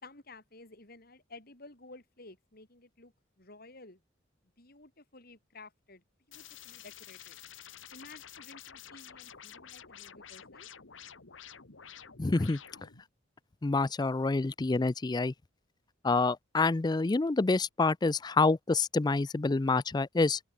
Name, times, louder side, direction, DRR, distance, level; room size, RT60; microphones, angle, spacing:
voice 1, 0.0-3.1 3.4-4.0 4.6-7.4 7.9-10.7, left 3 dB, 55° left, 5.9 m, -53 dB
sound 1, 6.3-13.0, left 9 dB, 90° left, 1.9 m, -50 dB
voice 2, 12.2-12.6 13.6-15.3 16.0-20.4, left 3 dB, 20° left, 0.4 m, -27 dB
open air
head